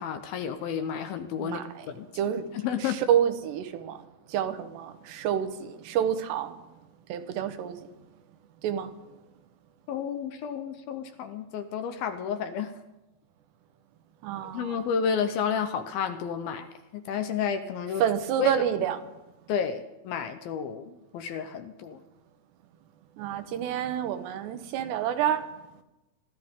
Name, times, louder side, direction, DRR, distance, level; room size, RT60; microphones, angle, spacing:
voice 1, 0.0-2.1 2.5-3.0 9.9-12.7 14.5-16.7 16.9-18.0 18.4-18.5 19.5-22.0, left 7 dB, 75° left, 2.4 m, -31 dB
voice 2, 1.4-1.9 2.1-2.5 2.8-6.6 7.1-7.8 8.6-8.9 14.2-14.8 18.0-19.0 23.2-25.5, right 9 dB, 90° right, 3.2 m, -28 dB
25.5 x 13.0 x 3.7 m
omnidirectional pair, 4.7 m